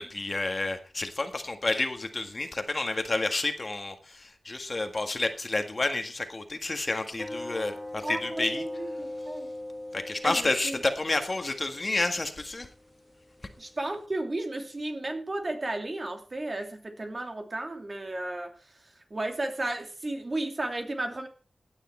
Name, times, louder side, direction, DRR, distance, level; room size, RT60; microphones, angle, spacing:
voice 1, 0.0-8.7 9.9-12.7, left 2 dB, 35° left, 7 dB, 1.7 m, -30 dB
sound 1, 7.2-14.1, left 1 dB, 10° left, 1.5 m, -41 dB
voice 2, 8.0-9.5 10.2-10.8 13.6-21.3, right 2 dB, 35° right, 4 dB, 2.6 m, -34 dB
16.0 x 9.9 x 4.5 m, 0.36 s
wide cardioid pair, 105°, 0 cm